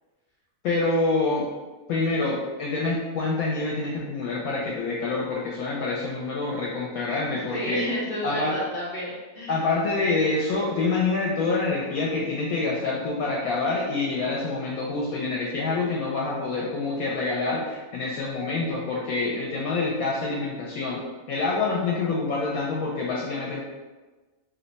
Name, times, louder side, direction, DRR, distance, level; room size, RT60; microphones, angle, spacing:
voice 1, 0.6-1.5 1.9-7.8 8.2-8.5 9.5-21.0 21.3-23.6, left 3 dB, 80° left, -4 dB, 1.0 m, -26 dB
voice 2, 7.3-9.6 11.9-12.1, equal, 50° left, -5 dB, 0.9 m, -32 dB
2.7 x 2.2 x 3.9 m, 1.2 s
omnidirectional pair, 1.5 m